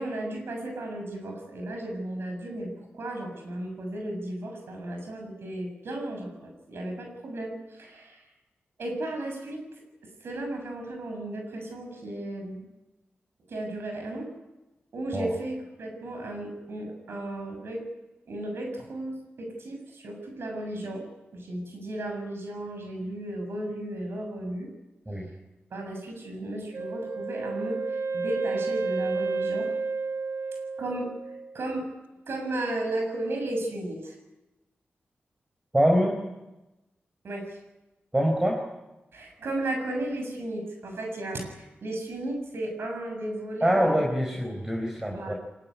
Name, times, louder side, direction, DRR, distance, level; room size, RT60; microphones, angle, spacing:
voice 1, 0.0-8.2 8.8-9.6 10.2-12.6 13.5-14.3 14.9-17.8 18.3-21.0 21.3-24.7 25.7-29.7 30.8-31.1 31.5-31.9 32.3-34.2 37.2-37.6 39.1-44.0 45.1-45.4, right 1 dB, 80° right, 4 dB, 7.1 m, -34 dB
Wind instrument woodwind instrument, 26.7-31.6, right 4 dB, 65° right, 1.3 m, -31 dB
voice 2, 35.7-36.2 38.1-38.6 43.6-45.3, equal, 15° right, 1 dB, 4.8 m, -24 dB
23.5 x 20.5 x 9.6 m, 1.0 s
wide cardioid pair, 100°, 4 cm